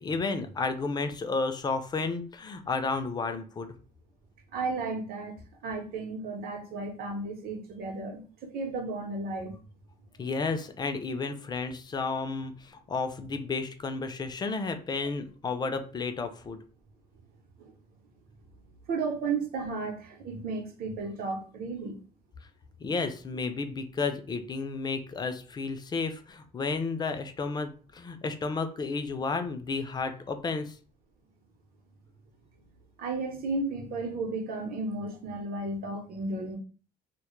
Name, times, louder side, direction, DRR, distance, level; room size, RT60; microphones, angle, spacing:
voice 1, 0.0-3.7 10.2-16.6 22.8-30.8, left 4 dB, 25° left, 0.3 m, -32 dB
voice 2, 4.5-5.3 5.6-9.6 17.6-17.7 18.9-22.0 33.0-36.6, right 3 dB, 60° right, 0.7 m, -33 dB
2.2 x 2.0 x 3.0 m
cardioid pair, 110°, 17 cm